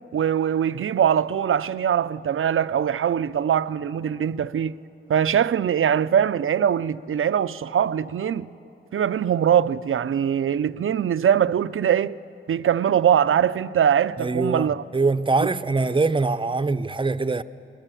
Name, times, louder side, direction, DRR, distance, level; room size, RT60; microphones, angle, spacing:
voice 1, 0.1-4.8 5.1-8.5 8.9-12.1 12.5-14.8 15.4-15.5, right 9 dB, 80° right, 0.5 m, -22 dB
voice 2, 14.2-17.4, right 3 dB, 25° right, 0.6 m, -23 dB
22.0 x 21.0 x 9.2 m
wide cardioid pair, 110°, 21 cm